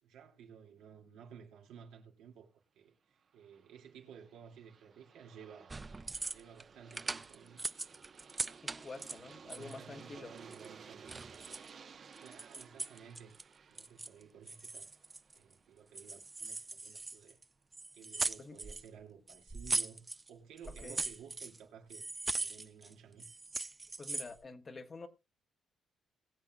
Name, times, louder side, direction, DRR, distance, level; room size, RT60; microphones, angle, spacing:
voice 1, 0.0-5.8 6.3-7.6 9.1-11.4 12.2-14.9 15.3-17.4 17.9-22.0 22.4-23.3, right 7 dB, 90° right, 2.4 m, -55 dB
Aircraft, 3.3-16.1, right 6 dB, 50° right, 1.0 m, -56 dB
sound 1, 5.7-6.6 6.9-9.8 10.4-11.7 12.1-13.4 13.8-14.2 14.5-15.5 16.0-17.4 17.7-18.9 19.3-20.3 20.6-21.6 21.9-22.9 23.2-24.4, right 3 dB, 25° right, 0.4 m, -40 dB
voice 2, 8.6-10.3 18.4-18.6 20.8-21.0 24.0-25.1, left 3 dB, 35° left, 1.4 m, -48 dB
20.5 x 7.6 x 2.3 m
cardioid pair, 90°, 0 cm